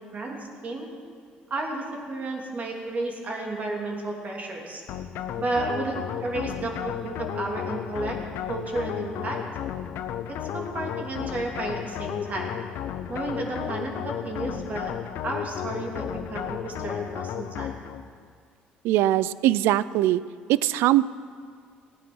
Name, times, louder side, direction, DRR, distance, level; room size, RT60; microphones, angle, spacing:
voice 1, 0.1-0.9 1.5-4.8 5.4-8.2 8.5-9.6 10.3-12.6 13.1-17.8, right 2 dB, 40° right, 0 dB, 3.0 m, -32 dB
sound 1, 4.9-18.1, left 10 dB, 75° left, 0.7 m, -33 dB
voice 2, 18.8-20.2 20.5-21.0, right 14 dB, 85° right, 19 dB, 0.4 m, -21 dB
16.5 x 9.9 x 6.2 m, 2.1 s
cardioid pair, 85°, 4 cm